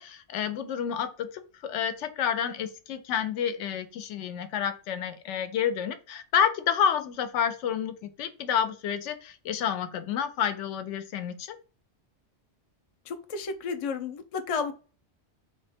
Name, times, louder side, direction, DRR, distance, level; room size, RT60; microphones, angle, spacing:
voice 1, 0.0-11.6, left 8 dB, 85° left, 9 dB, 0.9 m, -29 dB
voice 2, 13.0-14.7, left 5 dB, 55° left, 6 dB, 0.3 m, -32 dB
3.5 x 2.1 x 4.2 m, 0.35 s
omnidirectional pair, 1.2 m